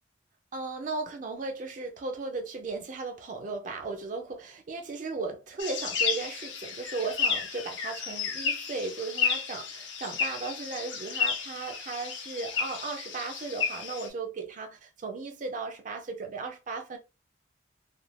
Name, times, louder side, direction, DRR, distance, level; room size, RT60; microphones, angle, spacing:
voice 1, 0.5-17.0, right 4 dB, 40° right, 0.4 m, -36 dB
sound 1, 5.6-14.1, left 5 dB, 70° left, 0.6 m, -32 dB
2.4 x 2.2 x 3.2 m
head